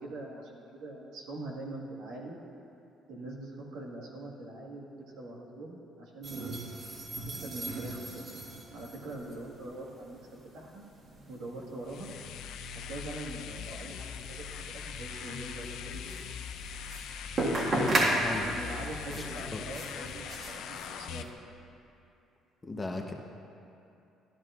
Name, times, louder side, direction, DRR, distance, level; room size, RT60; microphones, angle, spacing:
voice 1, 0.0-2.4 3.1-4.9 5.2-6.8 7.3-8.3 8.7-10.8 11.3-12.1 12.7-14.5 14.7-16.0 18.4-21.5, right 2 dB, 85° right, -3 dB, 1.7 m, -43 dB
sound 1, 6.2-21.3, right 1 dB, 45° right, 1.7 m, -36 dB
sound 2, 11.8-21.2, left 7 dB, 75° left, 0.4 m, -41 dB
voice 2, 17.7-18.5 19.1-19.2 19.5-19.6 22.7-23.1, left 2 dB, 20° left, 2 dB, 0.9 m, -34 dB
12.5 x 11.0 x 2.5 m, 2.7 s
cardioid pair, 100°, 0 cm